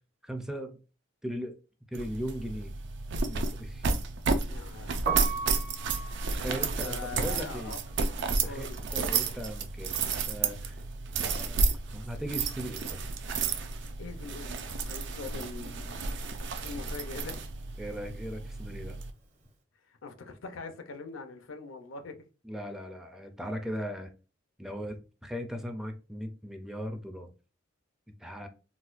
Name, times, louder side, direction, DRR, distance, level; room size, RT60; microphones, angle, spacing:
voice 1, 0.2-0.8 1.2-1.6 1.9-2.7 3.3-3.9 6.3-7.7 8.4-8.7 8.9-10.8 11.3-11.7 11.9-13.0 17.8-19.0 22.4-24.1 24.6-27.3 28.2-28.5, equal, 5° right, 0.4 m, -38 dB
sound 1, 1.9-19.1, right 4 dB, 65° right, 0.4 m, -32 dB
voice 2, 4.5-5.0 6.7-7.8 8.4-8.8 13.8-16.1 16.6-17.4 19.9-22.2, left 4 dB, 85° left, 0.6 m, -42 dB
Piano, 4.9-10.9 11.1-12.7 13.0-19.4, right 4 dB, 40° right, 0.8 m, -40 dB
4.0 x 2.2 x 2.4 m
head